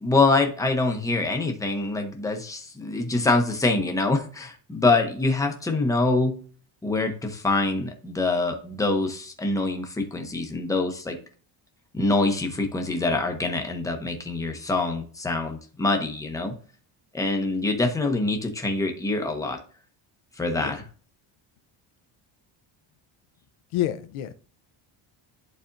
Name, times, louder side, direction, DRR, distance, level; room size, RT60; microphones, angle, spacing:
voice 1, 0.0-6.4 6.8-11.2 11.9-16.5 17.1-19.6 20.4-20.8, left 3 dB, 5° left, 3 dB, 0.7 m, -25 dB
voice 2, 23.7-24.3, left 12 dB, 75° left, 11 dB, 0.8 m, -28 dB
11.0 x 4.2 x 2.6 m, 0.42 s
cardioid pair, 180°, 49 cm